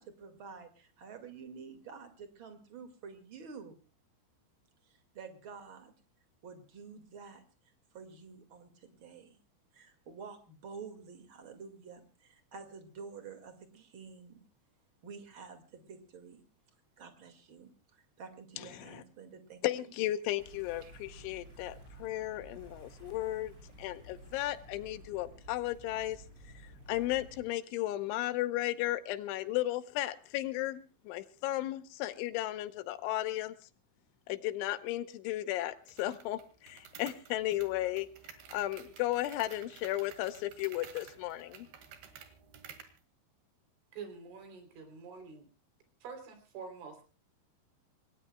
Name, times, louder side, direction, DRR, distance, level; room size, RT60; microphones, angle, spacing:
voice 1, 0.0-3.7 4.9-5.9 6.4-7.4 7.9-9.4 9.7-14.4 15.0-16.4 17.0-19.9 20.8-21.1, right 5 dB, 45° right, 1.8 m, -49 dB
voice 2, 19.6-26.2 26.9-33.6 34.3-38.1 38.5-41.7, left 15 dB, 85° left, 3.4 m, -35 dB
sound 1, 20.4-27.4, right 1 dB, 15° right, 8.0 m, -53 dB
sound 2, 35.9-43.0, right 8 dB, 65° right, 3.7 m, -53 dB
voice 3, 43.9-45.5 46.0-47.0, right 5 dB, 85° right, 5.9 m, -46 dB
27.0 x 19.5 x 2.3 m
omnidirectional pair, 5.3 m